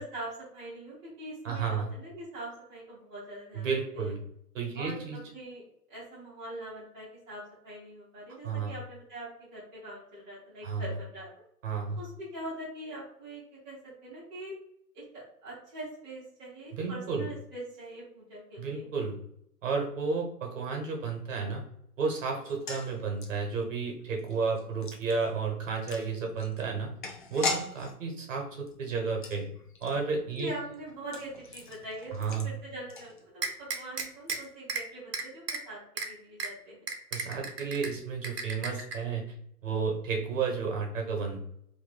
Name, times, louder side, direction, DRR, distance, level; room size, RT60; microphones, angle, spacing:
voice 1, 0.0-3.7 3.9-4.1 4.7-5.6 5.9-11.3 12.0-14.5 14.9-18.9 22.3-22.4 30.4-36.9, right 1 dB, 10° right, -9 dB, 0.7 m, -43 dB
voice 2, 1.4-1.9 3.5-4.2 4.5-5.2 8.4-8.7 10.6-10.8 11.6-12.0 16.7-17.3 18.6-19.2 19.6-21.6 22.0-26.9 27.3-29.5 29.8-30.5 32.1-32.6 37.1-39.3 39.6-41.4, right 5 dB, 50° right, 1 dB, 1.2 m, -32 dB
sound 1, 22.4-33.6 33.9-34.0 34.3-34.5, left 3 dB, 35° left, 0.5 m, -41 dB
sound 2, 33.4-34.4 34.7-34.8 35.1-35.6 36.0-36.1 36.4-36.5 36.9-37.9 38.2-39.0, right 4 dB, 80° right, 1.0 m, -33 dB
3.0 x 2.6 x 4.1 m, 0.73 s
hypercardioid pair, 140°, 47 cm